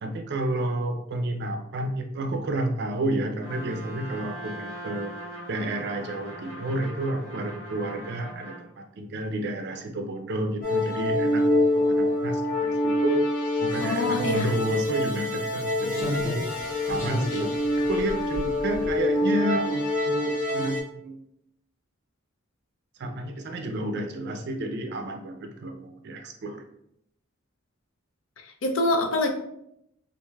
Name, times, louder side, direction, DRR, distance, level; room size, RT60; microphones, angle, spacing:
voice 1, 0.0-5.1 5.5-13.3 13.6-16.6 16.9-20.8 21.0-21.2 23.0-26.6, right 1 dB, 55° right, 5 dB, 0.5 m, -30 dB
Trumpet, 3.4-8.7, right 1 dB, 90° left, 1.4 m, -41 dB
sound 1, 10.6-20.8, left 1 dB, 45° left, 1.0 m, -26 dB
voice 2, 13.8-14.5 28.4-29.3, left 2 dB, 65° left, 4 dB, 0.5 m, -25 dB
Slam, 14.5-14.6 15.9-19.4 19.7-19.9, left 1 dB, 15° left, 0.8 m, -35 dB
4.6 x 2.5 x 2.3 m, 0.77 s
head